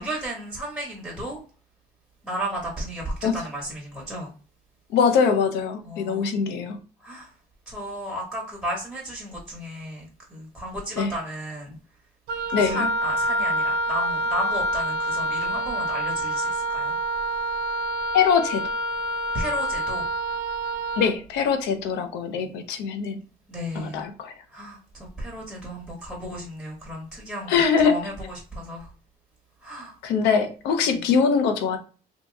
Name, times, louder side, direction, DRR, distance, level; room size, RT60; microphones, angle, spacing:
voice 1, 0.0-1.4 2.2-4.3 5.8-6.3 6.6-6.7 7.0-7.3 7.7-11.8 12.6-17.0 19.3-20.1 23.5-24.0 24.5-28.1 28.5-28.9 29.6-30.4 30.9-31.0, equal, ahead, 1.3 m, -34 dB
voice 2, 4.9-6.8 11.0-11.1 12.5-12.9 18.1-18.6 21.0-23.2 23.7-24.3 27.5-28.0 30.0-31.8, left 6 dB, 85° left, 0.7 m, -22 dB
Wind instrument woodwind instrument, 12.3-21.1, equal, 70° right, 0.6 m, -27 dB
2.9 x 2.7 x 3.4 m
cardioid pair, 110°, 17 cm